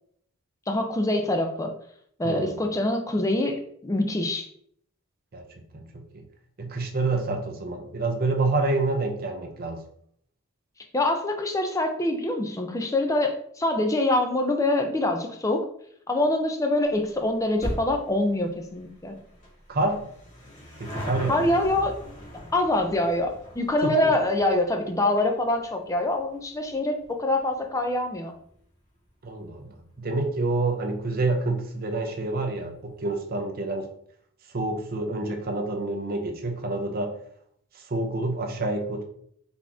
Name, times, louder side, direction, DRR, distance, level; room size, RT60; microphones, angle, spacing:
voice 1, 0.7-1.7 2.2-4.5 10.9-15.7 16.1-19.2 21.3-21.9 22.5-28.3, left 1 dB, 15° left, 4 dB, 0.5 m, -25 dB
voice 2, 2.2-2.6 5.3-5.4 5.7-6.2 6.6-9.8 19.7-20.0 20.8-21.5 23.8-24.1 29.2-33.9 34.5-37.2 37.7-39.0, right 2 dB, 45° right, 3 dB, 0.6 m, -28 dB
sound 1, 16.8-29.6 29.9-30.0 30.9-31.0 31.2-31.3 31.5-31.6, equal, 35° left, 1.3 m, -41 dB
4.1 x 2.9 x 3.5 m, 0.66 s
head